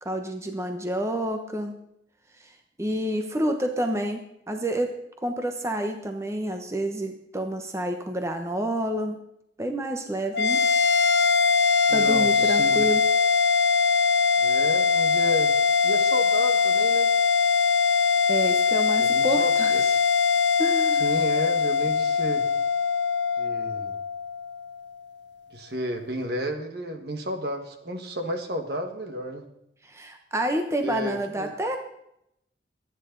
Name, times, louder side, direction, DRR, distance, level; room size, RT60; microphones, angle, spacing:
voice 1, 0.0-1.8 2.4-2.5 2.8-4.9 5.2-9.2 9.6-10.6 11.9-13.0 18.3-20.0 20.6-21.0 29.8-31.8, right 1 dB, 15° right, 4 dB, 1.0 m, -29 dB
sound 1, 10.3-24.9, left 5 dB, 80° left, 0.8 m, -22 dB
voice 2, 11.9-12.9 14.4-15.5 15.8-17.1 19.0-19.8 21.0-22.5 23.4-23.9 25.5-29.5 30.8-31.5, equal, 60° right, 6 dB, 1.7 m, -32 dB
25.0 x 10.0 x 3.9 m, 0.78 s
head